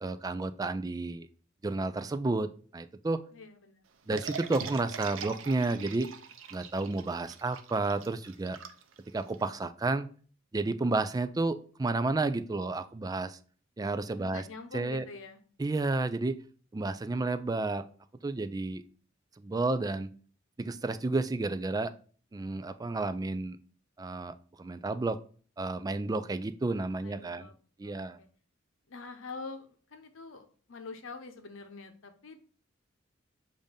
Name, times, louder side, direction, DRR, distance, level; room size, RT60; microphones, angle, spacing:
voice 1, 0.0-1.3 1.6-3.2 4.1-6.1 6.5-8.6 9.1-10.1 10.5-13.4 13.8-14.4 14.7-15.0 15.6-16.4 16.7-17.9 18.2-18.8 19.4-20.1 20.6-21.9 22.3-23.6 24.0-25.2 25.6-27.5 27.8-28.2, right 3 dB, 20° right, 11 dB, 0.3 m, -31 dB
voice 2, 3.3-3.8 14.2-15.4 27.0-27.5 27.8-28.3 28.9-32.4, left 4 dB, 75° left, 7 dB, 0.8 m, -45 dB
sound 1, 4.1-9.4, right 6 dB, 80° right, 0.6 m, -43 dB
7.2 x 2.6 x 5.1 m, 0.43 s
head